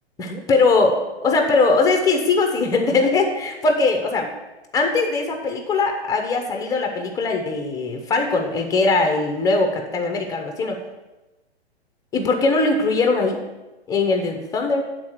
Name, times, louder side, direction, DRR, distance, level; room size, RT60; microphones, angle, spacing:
voice 1, 0.2-4.3 4.7-10.8 12.1-13.4 13.9-14.8, left 3 dB, 10° left, 4 dB, 0.8 m, -20 dB
8.7 x 4.0 x 6.3 m, 1.1 s
figure-of-eight pair, 115°, 33 cm